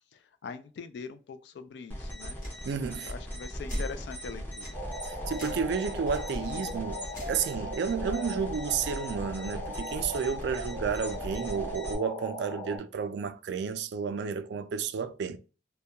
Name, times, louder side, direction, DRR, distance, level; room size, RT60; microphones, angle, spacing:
voice 1, 0.1-2.4 2.8-4.8, left 5 dB, 65° left, 0.3 m, -42 dB
sound 1, 1.9-11.9, equal, 10° left, 0.5 m, -39 dB
sound 2, 2.4-2.6 3.7-4.0 4.6-4.8 5.3-5.7 6.1-6.2 7.1-7.4, equal, 45° left, 1.1 m, -37 dB
voice 2, 2.6-3.1 5.1-15.4, right 6 dB, 65° right, 0.3 m, -32 dB
sound 3, 4.7-12.8, equal, 80° left, 1.2 m, -39 dB
2.2 x 2.2 x 2.7 m
head